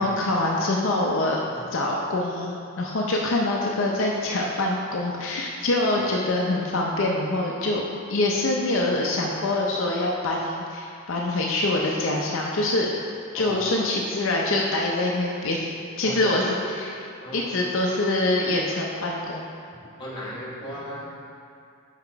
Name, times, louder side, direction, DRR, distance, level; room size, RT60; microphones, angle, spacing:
voice 1, 0.0-1.4 1.7-7.8 8.1-12.9 13.3-15.7 16.0-16.9 17.3-19.4, left 2 dB, 60° left, -2 dB, 0.5 m, -25 dB
voice 2, 13.3-13.7 16.0-16.4 17.2-17.6 20.0-21.0, equal, 20° left, -6 dB, 1.2 m, -36 dB
5.7 x 4.9 x 4.5 m, 2.4 s
head